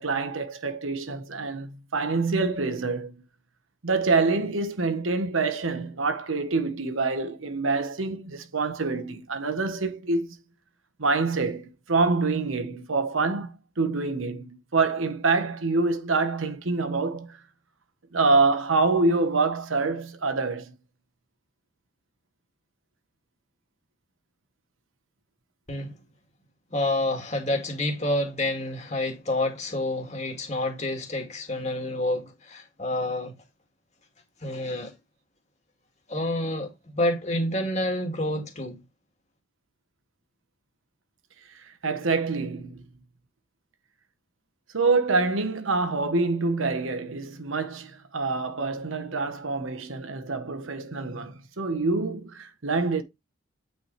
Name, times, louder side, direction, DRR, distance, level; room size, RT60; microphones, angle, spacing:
voice 1, 0.0-3.1 3.8-10.3 11.0-17.4 18.1-20.7 41.7-42.8 44.7-53.0, right 3 dB, 80° right, 1.2 m, -26 dB
voice 2, 26.7-33.3 34.4-34.9 36.1-38.8, left 1 dB, 35° left, 2.3 m, -28 dB
9.1 x 4.8 x 3.3 m
head